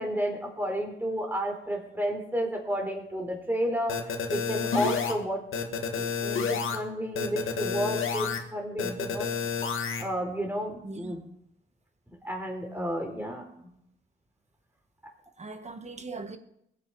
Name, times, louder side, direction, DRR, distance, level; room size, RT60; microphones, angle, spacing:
voice 1, 0.0-5.4 6.0-9.5 10.0-11.2 12.2-13.7, equal, 10° right, 4.2 m, -32 dB
sound 1, 3.9-5.1 5.5-6.8 7.2-8.4 8.8-10.0, left 6 dB, 70° left, 2.1 m, -30 dB
voice 2, 15.4-16.4, right 3 dB, 30° right, 1.6 m, -40 dB
21.0 x 9.6 x 4.9 m
cardioid pair, 90°, 21 cm